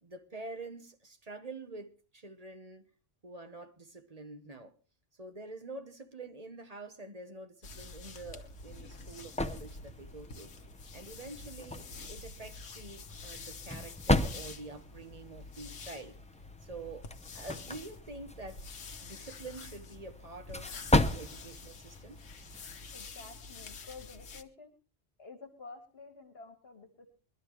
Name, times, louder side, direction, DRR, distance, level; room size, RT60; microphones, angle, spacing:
voice 1, 0.0-2.8 3.2-4.7 5.2-10.5 10.9-16.2 16.6-17.1 17.3-18.6 19.0-22.2, right 3 dB, 35° right, 1.3 m, -47 dB
sound 1, 7.6-24.4, left 4 dB, 80° left, 1.5 m, -48 dB
sound 2, 8.4-23.0, left 1 dB, 10° left, 0.4 m, -36 dB
voice 2, 22.9-24.7 25.2-27.1, left 4 dB, 55° left, 2.0 m, -50 dB
22.0 x 12.0 x 3.3 m
omnidirectional pair, 1.2 m